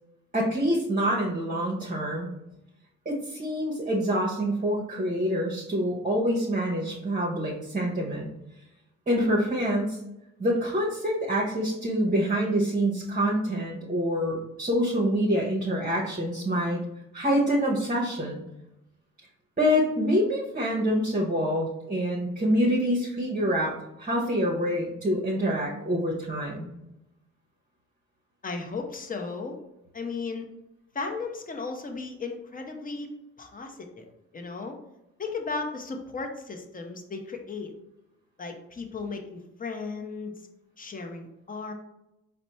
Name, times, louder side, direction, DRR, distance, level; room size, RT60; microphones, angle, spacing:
voice 1, 0.3-2.3 3.0-8.3 9.1-10.0 10.4-16.8 17.1-18.4 19.6-26.7, equal, 25° right, -2 dB, 0.9 m, -26 dB
voice 2, 28.4-29.6 29.9-30.5 30.9-33.1 33.4-34.0 34.3-34.8 35.2-37.7 38.4-40.5 40.8-41.7, left 4 dB, 25° left, 3 dB, 0.8 m, -35 dB
4.1 x 2.2 x 4.1 m, 0.89 s
supercardioid pair, 60°, 32 cm